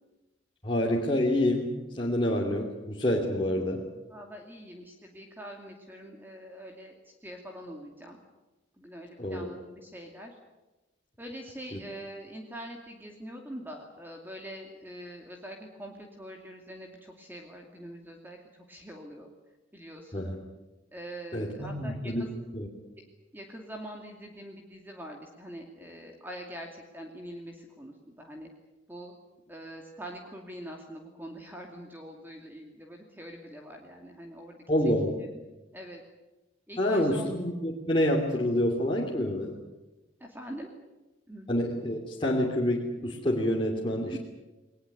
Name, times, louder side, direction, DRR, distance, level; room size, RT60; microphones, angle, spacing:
voice 1, 0.6-3.8 9.2-9.5 11.7-11.8 20.1-20.4 21.3-22.3 22.5-22.7 34.7-35.1 36.8-39.6 41.5-44.2, left 1 dB, 25° left, -3 dB, 3.0 m, -27 dB
voice 2, 4.1-8.2 8.8-10.3 11.2-18.4 18.7-19.3 19.7-20.3 20.9-22.3 22.9-23.0 23.3-28.5 28.9-29.1 29.5-34.6 35.0-35.4 35.7-36.0 36.7-37.3 40.2-40.7 41.3-41.5 44.1-44.2, equal, 10° right, 2 dB, 2.5 m, -44 dB
21.0 x 20.5 x 9.5 m, 1.1 s
head